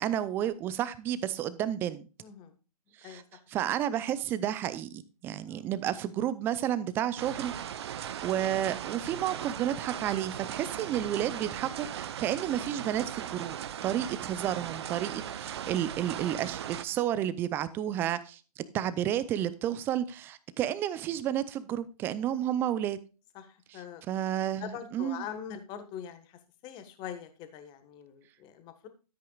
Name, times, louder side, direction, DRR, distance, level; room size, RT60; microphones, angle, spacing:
voice 1, 0.0-2.0 3.0-3.2 3.5-7.5 7.8-13.5 13.8-23.0 23.7-25.3, right 11 dB, 10° right, 16 dB, 0.4 m, -31 dB
voice 2, 2.2-2.5 3.0-3.4 5.5-5.6 15.0-15.2 23.3-24.0 24.6-28.9, left 9 dB, 20° left, 9 dB, 1.5 m, -43 dB
sound 1, 7.2-16.8, right 10 dB, 40° right, 0.8 m, -38 dB
13.0 x 8.4 x 2.3 m, 0.33 s
figure-of-eight pair, 135°, 20 cm